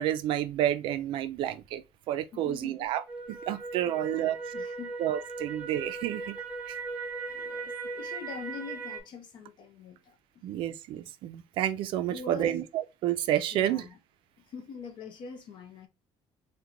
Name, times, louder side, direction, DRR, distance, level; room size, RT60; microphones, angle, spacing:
voice 1, 0.0-4.4 5.0-6.4 6.7-6.8 10.4-13.9, right 12 dB, 55° right, 0.4 m, -30 dB
voice 2, 2.3-2.9 3.8-5.0 7.3-10.4 12.1-12.6 13.5-14.0 14.5-15.9, left 6 dB, 50° left, 0.6 m, -44 dB
sound 1, 3.1-9.0, right 4 dB, 10° right, 0.7 m, -38 dB
2.8 x 2.2 x 3.7 m
cardioid pair, 170°, 10 cm